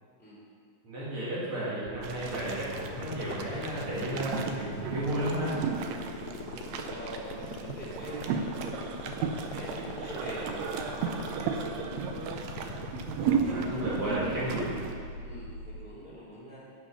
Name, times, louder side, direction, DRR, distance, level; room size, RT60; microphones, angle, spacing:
voice 1, 0.8-5.6 13.4-14.7, right 1 dB, 40° right, -7 dB, 3.1 m, -33 dB
sound 1, 1.8-15.8, left 6 dB, 90° left, 1.6 m, -41 dB
sound 2, 2.0-14.9, right 6 dB, 80° right, 1.6 m, -34 dB
voice 2, 6.2-8.5 9.4-12.1 13.2-14.7 15.2-16.6, equal, 15° right, -7 dB, 2.6 m, -44 dB
8.1 x 8.0 x 5.7 m, 2.2 s
omnidirectional pair, 3.8 m